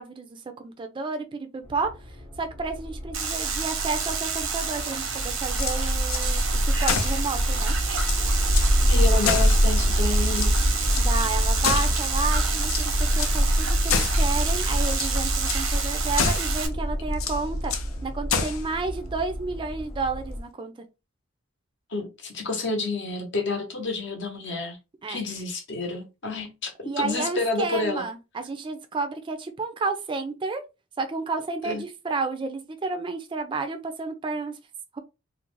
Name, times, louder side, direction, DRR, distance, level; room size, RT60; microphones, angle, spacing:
voice 1, 0.0-1.9 2.4-7.7 11.0-17.7 18.0-20.7 25.0-25.2 26.8-30.6 31.0-34.6 34.9-35.0, right 3 dB, 25° right, 0.3 m, -31 dB
sound 1, 1.7-20.4, equal, 20° left, 0.7 m, -25 dB
sound 2, 3.1-16.7, right 6 dB, 85° right, 0.7 m, -30 dB
sound 3, 5.5-6.3 6.8-7.2 7.6-7.7 7.9-8.7 9.2-10.0 10.3-11.1 11.6-12.2 12.6-13.4 13.9-14.3 14.8-15.1 15.5-15.7 16.2-16.6 17.1-17.9 18.3-18.7, left 6 dB, 85° left, 0.5 m, -28 dB
voice 2, 8.8-10.7 21.9-24.8 25.1-26.7 27.0-28.0 31.6-31.8, left 3 dB, 60° left, 0.8 m, -29 dB
2.5 x 2.0 x 3.0 m
head